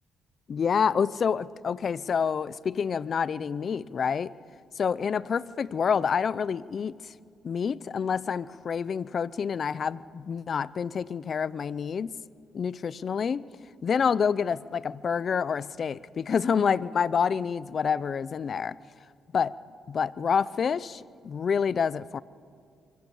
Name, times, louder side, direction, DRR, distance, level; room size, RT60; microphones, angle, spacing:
voice 1, 0.5-4.3 4.8-6.9 7.4-12.1 12.5-13.5 13.8-18.7 19.3-19.5 19.9-22.2, left 6 dB, 50° left, 19 dB, 0.6 m, -27 dB
25.0 x 25.0 x 7.2 m, 2.3 s
cardioid pair, 90°, 0 cm